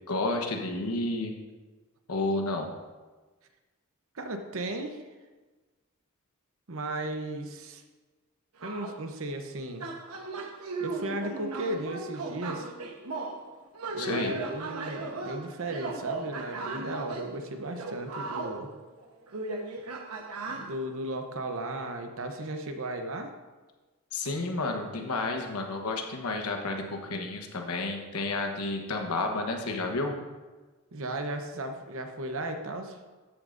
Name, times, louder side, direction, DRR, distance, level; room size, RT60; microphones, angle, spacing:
voice 1, 0.1-1.3 2.1-2.7 14.0-14.3 24.1-30.1, left 2 dB, 80° left, 3 dB, 1.1 m, -31 dB
voice 2, 4.1-5.0 6.7-7.8 8.6-9.9 10.8-12.7 13.9-18.7 20.5-23.3 30.9-33.0, right 1 dB, 65° right, 6 dB, 0.9 m, -35 dB
sound 1, 8.6-9.0 9.8-13.4 13.7-17.3 17.8-20.7, right 3 dB, 80° right, 1.1 m, -37 dB
13.0 x 8.5 x 2.6 m, 1.3 s
head